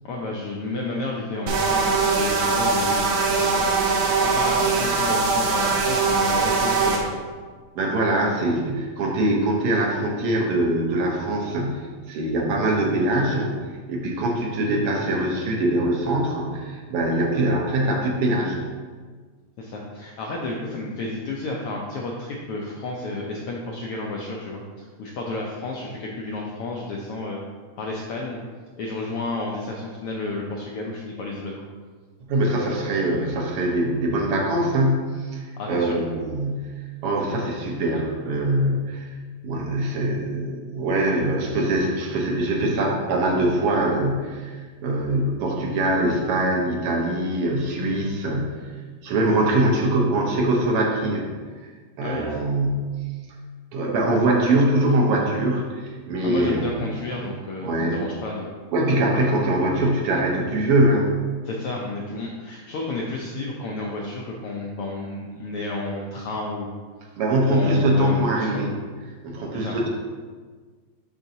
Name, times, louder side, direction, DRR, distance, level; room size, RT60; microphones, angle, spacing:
voice 1, 0.0-7.2 19.6-27.4 27.8-28.4 28.8-31.6 35.6-36.0 52.0-52.4 56.2-58.5 61.4-66.7 67.5-68.5 69.5-69.8, left 2 dB, 85° left, -2 dB, 1.2 m, -31 dB
sound 1, 1.5-7.0, right 4 dB, 85° right, 2.2 m, -21 dB
voice 2, 7.7-13.6 13.9-18.6 32.3-36.7 37.0-39.1 39.4-48.6 49.0-51.3 52.0-53.0 53.7-56.9 57.6-58.0 58.7-61.1 67.2-68.7 69.2-69.9, right 1 dB, 70° right, -1 dB, 1.5 m, -23 dB
11.5 x 3.9 x 2.7 m, 1.5 s
omnidirectional pair, 3.3 m